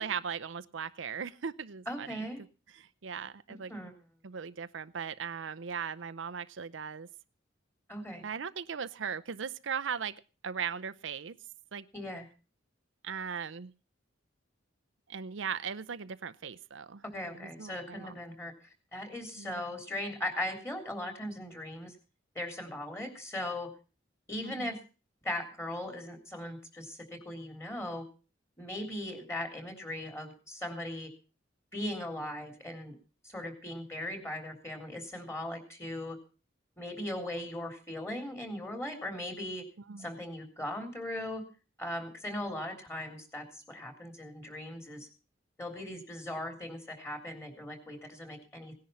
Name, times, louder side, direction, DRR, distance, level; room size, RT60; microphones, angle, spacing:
voice 1, 0.0-2.2 3.0-3.7 4.2-7.1 8.2-10.1 10.4-11.4 11.7-11.9 13.0-13.7 15.1-17.0 17.3-18.1 19.4-19.6 24.4-24.7 39.9-40.1, right 7 dB, 80° right, 12 dB, 0.6 m, -38 dB
voice 2, 1.9-2.4 3.7-3.9 7.9-8.2 11.9-12.3 17.1-18.5 18.9-22.0 22.4-23.7 24.3-24.8 25.2-28.0 28.6-31.1 31.7-33.0 33.2-36.2 36.8-39.7 40.0-41.4 41.8-45.1 45.6-48.7, left 1 dB, 15° left, 5 dB, 3.5 m, -39 dB
18.0 x 10.5 x 5.6 m, 0.35 s
head